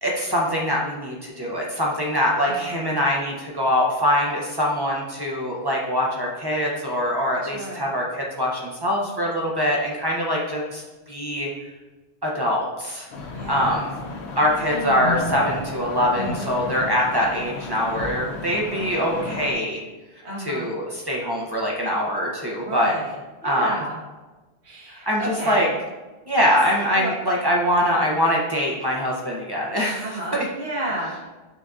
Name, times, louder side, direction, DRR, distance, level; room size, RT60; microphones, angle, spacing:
voice 1, 0.0-11.5 12.2-13.1 13.5-13.9 14.4-19.8 20.4-22.9 23.4-23.7 25.1-25.7 26.3-30.0 30.3-30.5, equal, 35° right, -3 dB, 0.4 m, -23 dB
voice 2, 2.4-2.8 7.4-7.9 13.3-13.9 14.7-14.8 20.2-20.7 22.6-23.2 23.4-24.0 24.6-25.6 26.9-27.1 30.0-31.3, right 1 dB, 85° right, -5 dB, 1.4 m, -32 dB
sound 1, 13.1-19.5, left 3 dB, 85° left, 0.8 m, -32 dB
6.6 x 2.5 x 2.3 m, 1.2 s
omnidirectional pair, 1.1 m